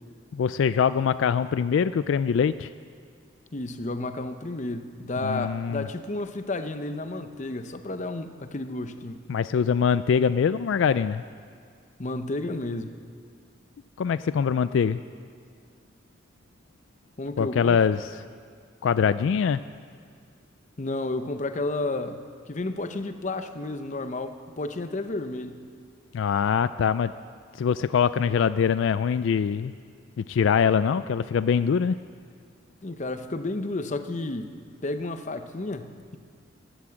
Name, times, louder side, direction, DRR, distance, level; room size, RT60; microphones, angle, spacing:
voice 1, 0.3-2.7 5.2-5.9 9.3-11.2 14.0-15.0 17.4-18.1 18.8-19.6 26.1-27.1 27.6-29.7 30.2-32.0, left 7 dB, 75° left, 14 dB, 0.3 m, -23 dB
voice 2, 3.5-9.2 12.0-12.9 17.2-17.8 20.8-22.2 22.5-25.6 32.8-34.5 34.8-36.2, left 2 dB, 40° left, 9 dB, 0.8 m, -32 dB
14.5 x 11.5 x 7.5 m, 2.1 s
head